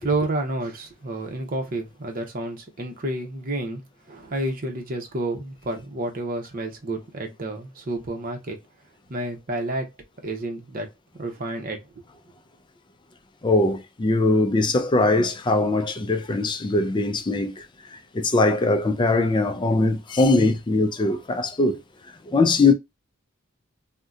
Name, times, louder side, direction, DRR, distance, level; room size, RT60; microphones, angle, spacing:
voice 1, 0.0-3.8 4.1-8.6 9.1-9.9 10.2-10.9 11.2-11.8, right 2 dB, 40° right, 0.8 m, -30 dB
voice 2, 13.4-17.6 17.9-21.8 22.2-22.7, left 2 dB, 20° left, 0.3 m, -21 dB
2.7 x 2.1 x 3.6 m
head